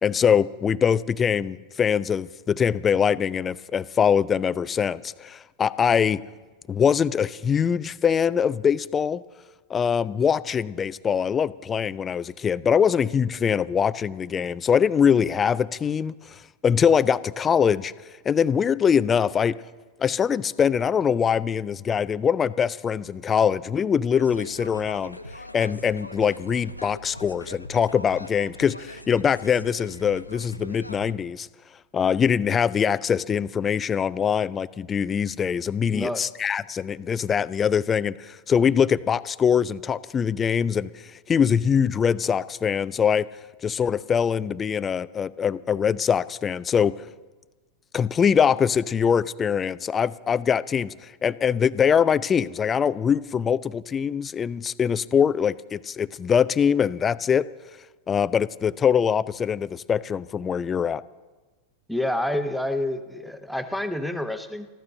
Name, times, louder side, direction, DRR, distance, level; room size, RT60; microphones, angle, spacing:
voice 1, 0.0-6.2 6.7-9.2 9.7-17.9 18.3-19.6 20.0-25.2 25.5-31.5 31.9-43.3 43.6-46.9 47.9-57.4 58.1-61.0, left 7 dB, 20° left, 19 dB, 0.4 m, -23 dB
sound 1, 24.1-31.1, left 1 dB, 90° left, 0.5 m, -41 dB
voice 2, 61.9-64.7, left 1 dB, ahead, 8 dB, 0.9 m, -28 dB
14.5 x 12.0 x 6.5 m, 1.3 s
figure-of-eight pair, 90°, 0 cm